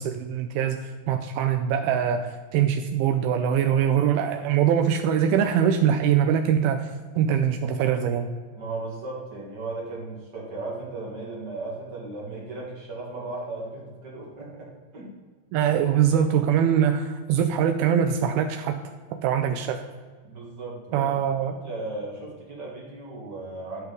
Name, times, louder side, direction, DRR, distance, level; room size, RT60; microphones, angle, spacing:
voice 1, 0.0-6.9 7.2-8.3 15.5-18.7 19.2-19.8 20.9-21.5, right 8 dB, 90° right, 5 dB, 2.1 m, -23 dB
voice 2, 8.6-15.1 20.2-21.2 21.5-23.8, right 2 dB, 65° right, -4 dB, 1.0 m, -36 dB
12.0 x 5.5 x 3.9 m, 1.5 s
omnidirectional pair, 4.9 m